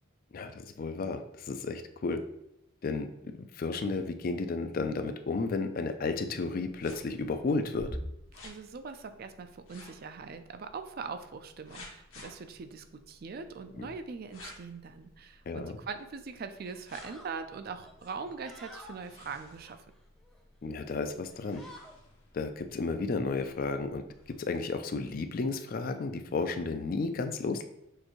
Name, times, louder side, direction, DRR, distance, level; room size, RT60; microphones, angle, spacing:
voice 1, 0.3-2.2 2.8-3.1 3.4-7.9 13.8-13.9 15.5-15.7 20.6-21.6 22.3-24.0 24.4-27.6, left 3 dB, 45° left, 8 dB, 0.3 m, -33 dB
sound 1, 6.7-24.4, left 1 dB, 75° left, 1.1 m, -51 dB
voice 2, 8.4-19.9, right 5 dB, 45° right, 9 dB, 0.4 m, -42 dB
sound 2, 15.9-16.1 16.6-17.3 17.8-19.0 19.6-20.4 20.8-21.1 21.3-22.0, equal, ahead, 0.7 m, -52 dB
6.3 x 2.6 x 3.0 m, 0.85 s
head